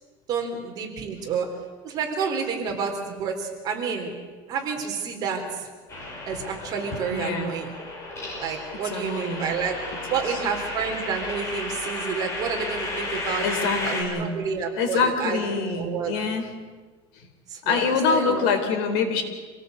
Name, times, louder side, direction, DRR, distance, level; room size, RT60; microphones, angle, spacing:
voice 1, 0.3-1.5 1.8-4.1 4.5-5.7 6.3-7.7 8.4-9.8 10.1-15.4 15.7-16.1 17.5-18.5, right 6 dB, 35° right, 2 dB, 4.0 m, -29 dB
sound 1, 5.9-14.0, left 2 dB, 25° left, 5.6 m, -33 dB
voice 2, 7.1-7.6 8.9-9.6 10.1-10.2 13.4-14.4 14.8-16.5 17.6-19.2, left 5 dB, 75° left, 6 dB, 4.0 m, -25 dB
27.0 x 17.5 x 8.1 m, 1.4 s
cardioid pair, 170°, 12 cm